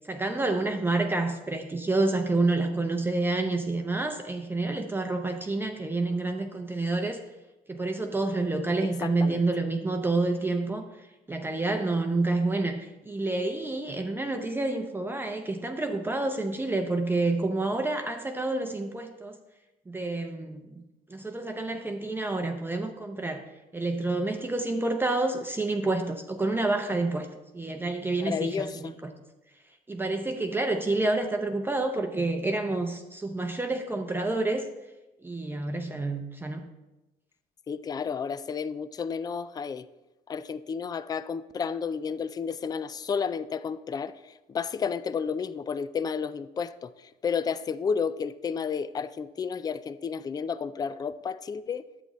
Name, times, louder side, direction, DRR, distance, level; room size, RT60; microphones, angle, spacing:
voice 1, 0.0-7.2 7.7-10.9 11.3-19.4 19.9-20.8 21.1-23.4 23.7-27.3 27.5-29.1 29.9-34.6 35.2-36.7, right 2 dB, 10° right, 0.7 m, -28 dB
voice 2, 9.0-9.4 28.2-28.9 37.7-39.9 40.3-44.1 44.5-46.9 47.2-51.8, left 6 dB, 25° left, 0.3 m, -31 dB
10.5 x 8.2 x 3.1 m
cardioid pair, 110°, 17 cm